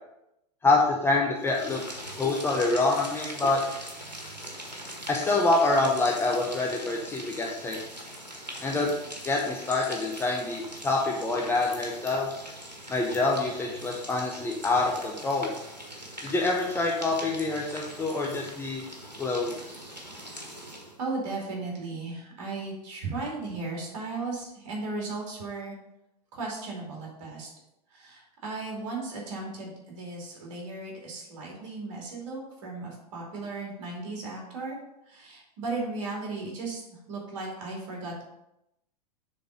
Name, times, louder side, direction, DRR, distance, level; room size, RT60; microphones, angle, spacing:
voice 1, 0.6-1.8 2.2-3.6 5.1-7.8 8.6-8.9 9.2-12.3 12.9-15.5 16.2-18.8 19.2-19.5, left 3 dB, 10° left, -1 dB, 0.8 m, -26 dB
sound 1, 1.4-21.0, equal, 90° right, 1.4 m, -41 dB
voice 2, 21.0-25.7 26.3-27.5 27.9-34.8 35.1-38.2, right 3 dB, 50° right, -2 dB, 2.7 m, -36 dB
6.8 x 4.0 x 5.1 m, 0.85 s
figure-of-eight pair, 95°, 21 cm